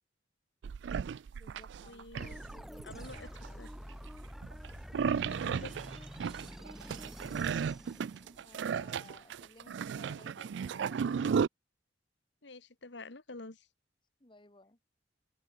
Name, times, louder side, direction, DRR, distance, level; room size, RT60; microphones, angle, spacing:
sound 1, 0.6-3.5 4.1-11.5, right 6 dB, 70° right, 0.3 m, -34 dB
voice 1, 1.3-3.9 7.0-7.8 8.4-11.3 14.2-14.8, left 2 dB, 25° left, 1.7 m, -59 dB
voice 2, 1.9-2.4 2.8-3.3 3.6-3.7 5.3-5.7 12.4-13.7, left 3 dB, 70° left, 1.7 m, -48 dB
sound 2, 2.2-8.6, equal, ahead, 1.9 m, -47 dB
open air
head